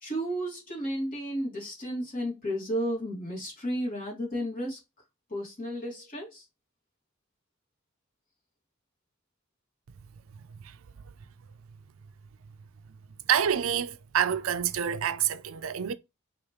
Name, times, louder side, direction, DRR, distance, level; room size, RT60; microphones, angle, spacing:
voice 1, 0.0-4.8 5.3-6.4, equal, 40° left, 2.5 m, -33 dB
voice 2, 13.3-15.9, right 9 dB, 70° right, 0.4 m, -27 dB
4.8 x 3.1 x 3.2 m
head